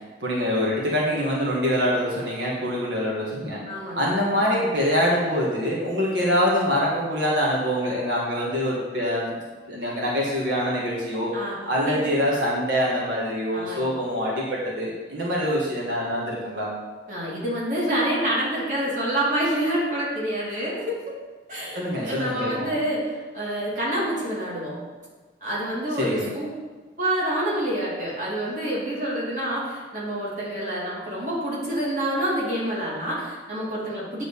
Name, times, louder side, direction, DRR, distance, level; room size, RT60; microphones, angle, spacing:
voice 1, 0.2-3.6 3.9-9.4 9.7-11.3 11.6-16.7 21.7-22.7 26.0-26.3, equal, 90° right, -4 dB, 1.7 m, -25 dB
voice 2, 3.7-4.2 11.3-11.6 11.8-12.1 13.5-13.8 17.1-21.2 21.5-24.8 25.4-26.5 27.0-34.3, right 1 dB, 45° right, -6 dB, 2.6 m, -27 dB
8.8 x 3.8 x 7.0 m, 1.4 s
head